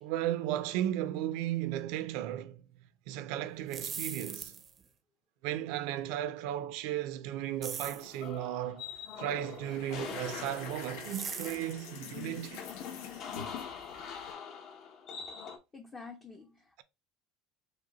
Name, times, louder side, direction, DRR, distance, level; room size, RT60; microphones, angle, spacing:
voice 1, 0.0-2.6 3.1-4.6 5.4-8.9 9.2-12.7, right 12 dB, 70° right, 0.5 m, -35 dB
sound 1, 3.6-4.8 7.6-8.1 11.0-11.7, right 6 dB, 25° right, 0.6 m, -40 dB
sound 2, 7.8-15.6, left 6 dB, 45° left, 0.8 m, -45 dB
sound 3, 8.8-9.0 9.3-14.3, left 7 dB, 75° left, 0.9 m, -45 dB
voice 2, 15.7-16.8, left 4 dB, 20° left, 0.6 m, -50 dB
5.0 x 2.2 x 4.0 m
cardioid pair, 150°, 0 cm